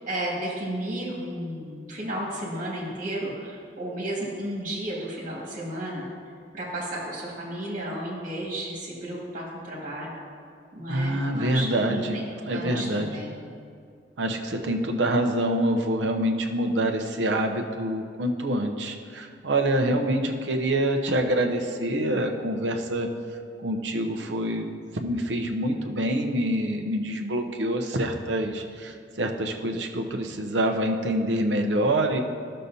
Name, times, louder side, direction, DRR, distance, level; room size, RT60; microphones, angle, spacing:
voice 1, 0.1-6.0 6.5-10.1 10.7-13.3, right 1 dB, 45° right, -4 dB, 2.1 m, -33 dB
voice 2, 10.9-13.1 14.2-23.1 23.6-32.2, right 1 dB, 70° right, 3 dB, 0.7 m, -26 dB
13.0 x 6.5 x 2.7 m, 2.2 s
head